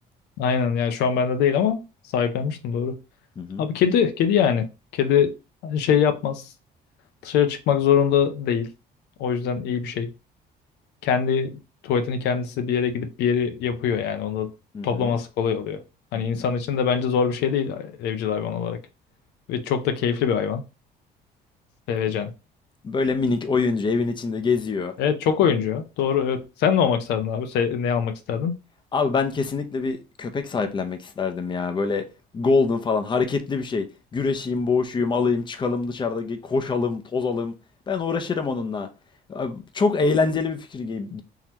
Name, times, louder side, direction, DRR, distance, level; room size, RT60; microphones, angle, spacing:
voice 1, 0.4-1.8 2.1-3.0 3.6-5.3 5.6-6.5 7.2-8.7 9.2-10.1 11.0-11.6 11.8-14.5 14.8-15.8 16.1-18.8 19.5-20.6 21.9-22.3 25.0-28.6, left 7 dB, 80° left, 0.6 m, -23 dB
voice 2, 14.7-15.2 16.1-16.4 22.8-24.9 28.9-32.1 32.3-33.8 34.1-37.5 37.9-38.9 39.3-41.2, left 4 dB, 25° left, 0.6 m, -25 dB
3.8 x 3.0 x 2.9 m
cardioid pair, 110°, 17 cm